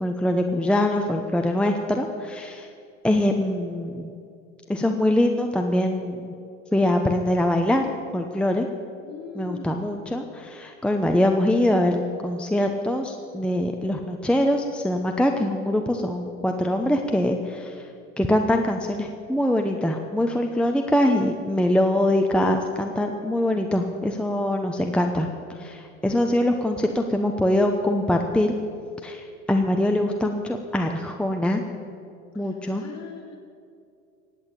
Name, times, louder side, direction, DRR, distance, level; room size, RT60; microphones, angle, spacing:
voice 1, 0.0-2.7 3.0-4.1 4.7-6.3 6.7-8.7 9.3-17.7 18.2-25.3 25.6-28.5 29.0-31.6 32.4-32.8, left 1 dB, 5° left, 3 dB, 0.9 m, -23 dB
voice 2, 9.0-9.8 32.4-33.4, left 6 dB, 40° left, -1 dB, 3.8 m, -40 dB
16.0 x 8.9 x 8.7 m, 2.5 s
hypercardioid pair, 100°, 39 cm